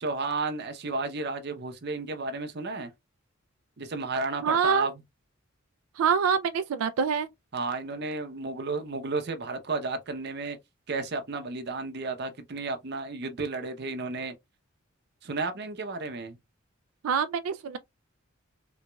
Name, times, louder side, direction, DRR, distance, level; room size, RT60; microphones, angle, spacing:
voice 1, 0.0-2.9 3.8-4.9 7.5-10.6 10.9-14.3 15.2-16.4, right 3 dB, 50° right, 0.7 m, -32 dB
voice 2, 4.4-4.9 6.0-7.3 17.0-17.8, right 6 dB, 90° right, 0.3 m, -25 dB
3.4 x 3.0 x 2.2 m
head